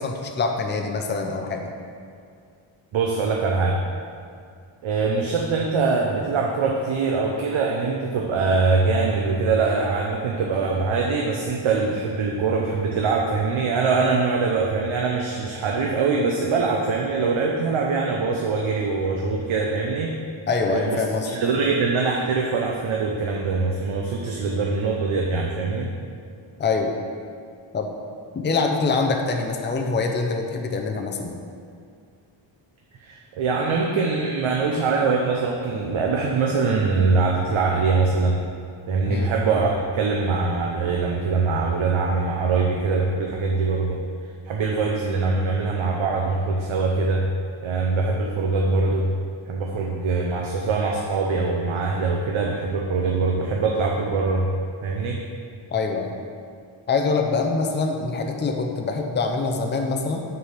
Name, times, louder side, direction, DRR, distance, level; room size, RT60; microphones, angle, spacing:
voice 1, 0.0-1.7 20.5-21.3 26.6-26.9 27.7-27.9 28.3-31.4 39.1-39.3 55.7-56.1 56.9-60.2, left 4 dB, 25° left, 3 dB, 0.5 m, -24 dB
voice 2, 2.9-3.8 4.8-20.1 20.7-25.9 33.0-38.4 38.9-44.0 44.5-47.3 47.6-49.1 49.5-54.4 54.8-55.2, right 4 dB, 75° right, -1 dB, 0.8 m, -23 dB
6.6 x 4.7 x 6.6 m, 2.2 s
wide cardioid pair, 170°, 48 cm